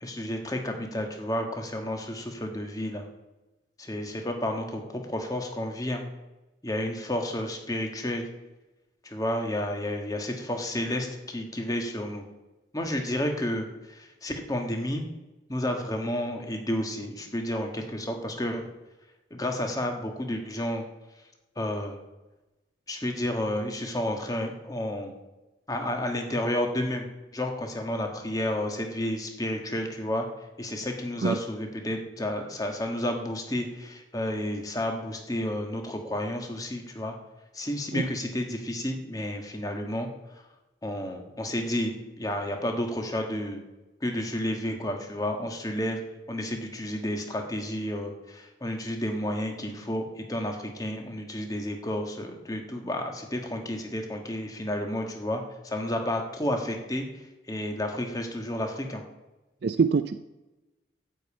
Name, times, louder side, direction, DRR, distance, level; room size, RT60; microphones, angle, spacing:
voice 1, 0.0-3.1 3.8-6.1 6.6-8.2 9.0-12.2 12.7-15.0 15.5-18.7 19.3-20.8 21.6-22.0 22.9-25.1 25.7-27.0 27.3-30.3 30.6-37.1 37.5-40.1 40.8-41.9 42.2-43.6 44.0-46.0 46.3-57.0 57.5-59.0, left 1 dB, 20° left, 3 dB, 1.5 m, -31 dB
voice 2, 59.6-60.2, right 5 dB, 60° right, 11 dB, 0.4 m, -24 dB
12.0 x 5.4 x 8.5 m, 1.1 s
head